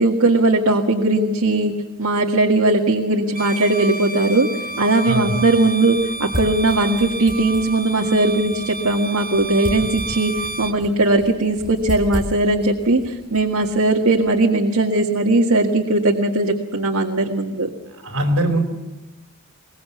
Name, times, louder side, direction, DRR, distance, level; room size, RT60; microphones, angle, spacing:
voice 1, 0.0-1.7 2.0-4.5 4.8-17.7, right 2 dB, 80° right, 1 dB, 1.9 m, -19 dB
Bowed string instrument, 3.3-10.8, right 2 dB, 40° right, 1.4 m, -31 dB
sound 1, 4.5-14.5, equal, 5° right, 5.7 m, -35 dB
voice 2, 5.0-5.3 18.0-18.6, right 1 dB, 65° right, 6 dB, 4.3 m, -21 dB
23.0 x 19.5 x 7.3 m, 1.0 s
head